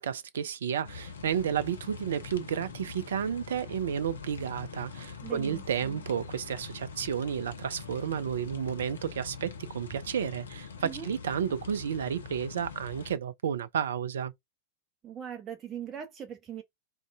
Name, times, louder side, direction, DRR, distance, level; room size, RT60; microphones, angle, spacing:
voice 1, 0.0-14.3, right 8 dB, 65° right, 0.3 m, -32 dB
sound 1, 0.8-13.2, left 6 dB, 70° left, 0.7 m, -44 dB
voice 2, 5.2-6.0 10.8-11.1 15.0-16.6, right 9 dB, 25° right, 0.7 m, -40 dB
3.6 x 2.2 x 3.4 m
figure-of-eight pair, 90°, 0 cm